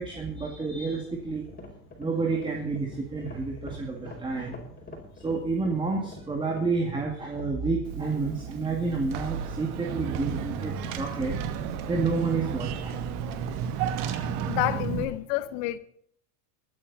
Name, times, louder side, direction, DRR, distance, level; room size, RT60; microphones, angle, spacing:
voice 1, 0.0-1.4 2.0-4.6 5.2-11.4 11.9-13.0, right 4 dB, 10° right, 2.2 m, -29 dB
sound 1, 1.1-7.6, left 2 dB, 20° left, 5.0 m, -45 dB
Car / Engine, 7.8-15.0, right 6 dB, 45° right, 2.4 m, -34 dB
sound 2, 9.1-14.8, right 12 dB, 65° right, 1.7 m, -37 dB
voice 2, 14.4-15.8, left 18 dB, 55° left, 1.2 m, -29 dB
22.0 x 9.2 x 4.1 m
supercardioid pair, 125°, 47 cm